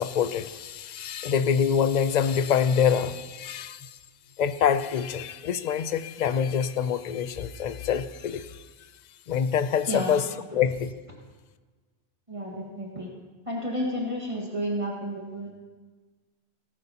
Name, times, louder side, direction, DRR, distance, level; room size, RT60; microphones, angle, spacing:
voice 1, 0.0-3.9 4.4-8.6 9.3-10.2 10.5-10.9, left 7 dB, 55° left, 12 dB, 0.5 m, -25 dB
voice 2, 9.8-10.2 10.5-10.6 12.3-13.1 13.4-15.5, equal, 30° right, -3 dB, 1.7 m, -31 dB
18.0 x 11.0 x 2.8 m, 1.3 s
omnidirectional pair, 1.1 m